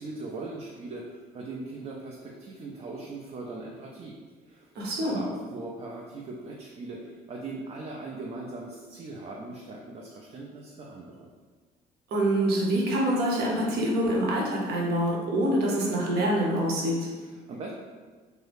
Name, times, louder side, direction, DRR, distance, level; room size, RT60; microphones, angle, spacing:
voice 1, 0.0-4.1 4.4-4.7 5.0-11.3 17.1-17.7, right 3 dB, 35° right, -2 dB, 0.4 m, -40 dB
voice 2, 4.7-5.2 12.1-17.1, right 1 dB, 70° right, -2 dB, 0.9 m, -25 dB
2.7 x 2.7 x 3.4 m, 1.4 s
cardioid pair, 110°, 17 cm